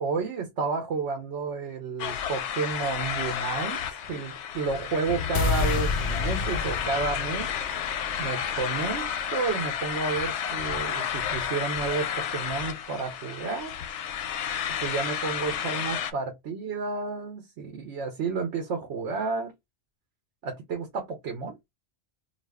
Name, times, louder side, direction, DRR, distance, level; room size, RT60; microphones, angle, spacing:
voice 1, 0.0-7.5 8.2-13.7 14.8-19.5 20.4-21.6, right 4 dB, 85° right, 1.0 m, -31 dB
sound 1, 2.0-16.1, left 8 dB, 85° left, 0.9 m, -31 dB
sound 2, 5.3-11.5, left 4 dB, 55° left, 0.6 m, -32 dB
2.5 x 2.4 x 3.4 m
omnidirectional pair, 1.1 m